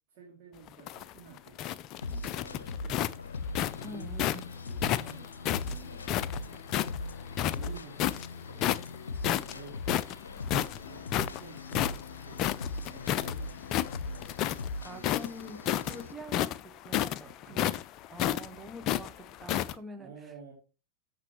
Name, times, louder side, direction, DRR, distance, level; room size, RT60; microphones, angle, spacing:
voice 1, 0.1-3.1 3.8-4.3 4.6-8.8 9.2-10.1 10.7-12.5 12.8-14.3 14.9-15.3 17.2-17.7 18.2-18.7 19.9-20.5, right 5 dB, 50° right, 2.8 m, -52 dB
sound 1, 0.7-4.4 4.8-7.0 7.3-8.3 8.6-9.0 9.2-13.3 13.6-14.7 15.0-19.7, left 12 dB, 35° left, 0.4 m, -30 dB
sound 2, 2.0-16.1, left 3 dB, 70° left, 0.8 m, -40 dB
voice 2, 3.8-4.5 14.8-17.8 18.1-20.1, equal, 10° right, 1.0 m, -45 dB
13.5 x 6.0 x 3.1 m
figure-of-eight pair, 90°, 0 cm